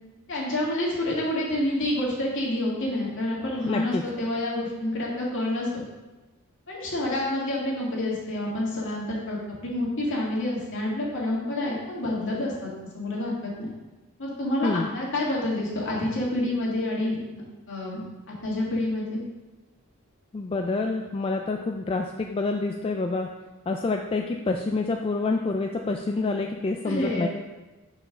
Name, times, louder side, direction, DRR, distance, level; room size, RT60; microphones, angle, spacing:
voice 1, 0.3-5.8 6.7-13.7 14.2-17.4 17.7-18.0 18.3-19.2 26.8-27.3, left 1 dB, 60° left, -5 dB, 2.1 m, -28 dB
voice 2, 3.6-4.0 14.6-14.9 20.3-23.3 23.7-27.3, left 3 dB, 25° left, 3 dB, 0.3 m, -27 dB
5.5 x 4.4 x 5.9 m, 1.1 s
head